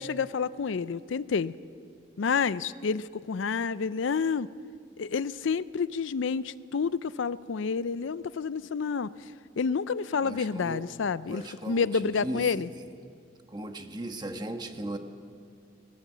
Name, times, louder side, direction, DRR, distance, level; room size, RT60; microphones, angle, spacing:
voice 1, 0.0-1.6 2.2-4.5 5.0-12.7, left 5 dB, 75° left, 17 dB, 0.5 m, -29 dB
voice 2, 10.2-10.8 11.2-12.4 13.5-15.0, right 1 dB, 20° right, 6 dB, 1.2 m, -37 dB
18.5 x 18.0 x 8.3 m, 2.2 s
head